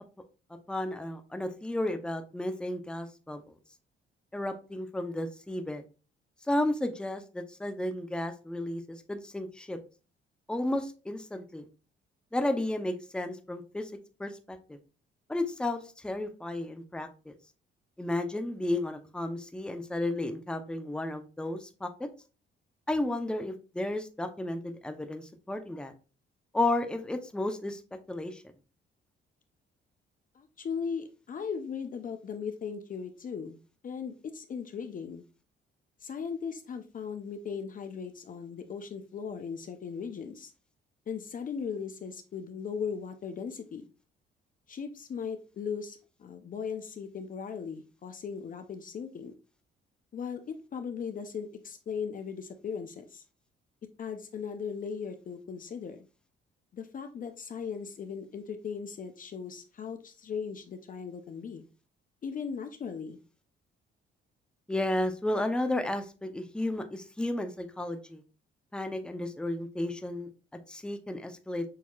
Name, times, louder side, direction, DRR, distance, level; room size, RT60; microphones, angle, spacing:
voice 1, 0.7-3.4 4.3-5.8 6.5-9.8 10.5-11.6 12.3-13.9 14.2-14.8 15.3-17.3 18.0-22.1 22.9-25.9 26.5-27.8 28.1-28.4 64.7-68.2 68.7-70.3 70.7-71.6, left 1 dB, 5° left, 6 dB, 0.6 m, -33 dB
voice 2, 30.3-33.6 33.8-35.2 36.0-40.5 41.1-43.8 44.7-49.3 50.1-53.2 54.0-56.0 56.7-61.6 62.2-63.2, left 6 dB, 45° left, 7 dB, 0.5 m, -38 dB
6.4 x 2.8 x 2.3 m, 0.33 s
cardioid pair, 90°, 20 cm